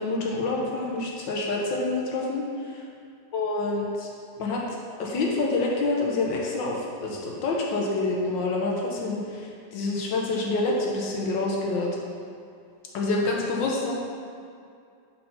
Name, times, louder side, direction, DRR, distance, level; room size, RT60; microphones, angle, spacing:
voice 1, 0.0-2.8 3.3-4.1 4.4-4.6 5.0-11.9 12.9-13.9, left 2 dB, 75° left, -2 dB, 1.6 m, -27 dB
5.3 x 4.4 x 5.5 m, 2.4 s
omnidirectional pair, 2.1 m